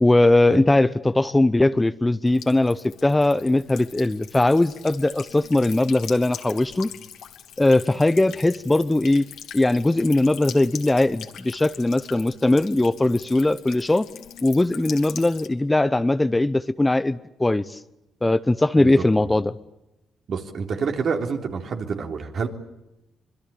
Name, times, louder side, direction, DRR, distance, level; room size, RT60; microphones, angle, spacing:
voice 1, 0.0-6.9 7.6-9.3 9.5-14.1 14.4-17.8 18.2-19.6, left 2 dB, 15° left, 14 dB, 0.9 m, -20 dB
Buzz / Water tap faucet / Trickle dribble, 2.3-15.5, left 9 dB, 75° left, 2.9 m, -42 dB
voice 2, 18.8-19.3 20.3-22.5, right 5 dB, 55° right, 4 dB, 3.6 m, -28 dB
26.0 x 22.5 x 8.6 m, 0.92 s
cardioid pair, 90°, 0 cm